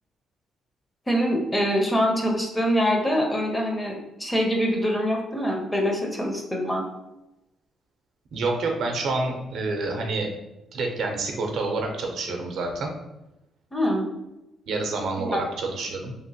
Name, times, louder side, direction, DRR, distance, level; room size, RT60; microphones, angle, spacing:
voice 1, 1.1-6.8 13.7-14.0 15.3-15.4, equal, 15° left, 1 dB, 0.6 m, -24 dB
voice 2, 8.3-10.3 10.7-12.9 14.7-16.1, right 3 dB, 70° right, 2 dB, 0.5 m, -28 dB
2.9 x 2.1 x 2.8 m, 0.93 s
cardioid pair, 90°, 0 cm